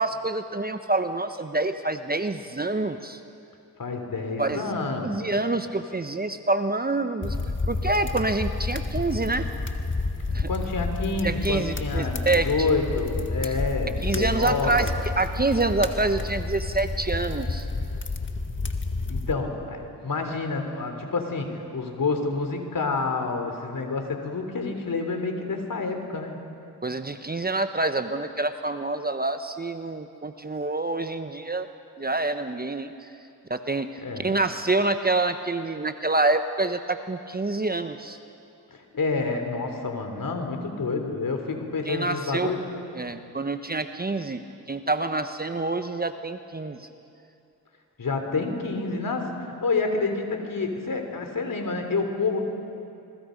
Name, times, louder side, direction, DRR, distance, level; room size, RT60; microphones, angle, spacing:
voice 1, 0.0-3.2 4.4-4.6 5.0-7.4 7.7-9.5 10.3-10.5 11.2-12.5 13.4-13.5 14.0-14.9 15.2-17.7 26.8-31.7 32.0-33.1 33.5-38.2 41.9-42.5 42.9-44.4 44.7-46.9, right 2 dB, 20° right, 9 dB, 1.0 m, -27 dB
voice 2, 3.8-5.2 10.5-14.9 18.9-26.4 34.0-34.3 38.7-42.7 48.0-52.4, left 3 dB, 50° left, 5 dB, 3.7 m, -28 dB
sound 1, 7.2-19.3, left 3 dB, 30° left, 1.8 m, -30 dB
26.0 x 22.5 x 5.3 m, 2.6 s
supercardioid pair, 55°, 42 cm